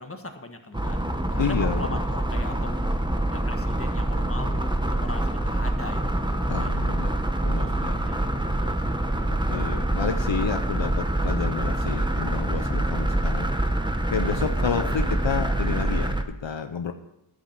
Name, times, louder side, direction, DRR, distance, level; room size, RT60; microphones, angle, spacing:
voice 1, 0.0-2.8 3.3-6.8 7.6-8.2 8.6-8.9, left 2 dB, 30° left, 5 dB, 1.4 m, -40 dB
sound 1, 0.7-16.2, right 1 dB, 10° right, 1.0 m, -25 dB
voice 2, 1.4-1.9 6.5-7.1 7.4-8.0 9.3-13.5 14.1-16.9, left 6 dB, 75° left, 8 dB, 0.7 m, -30 dB
11.5 x 7.6 x 5.8 m, 0.90 s
wide cardioid pair, 40°, 45 cm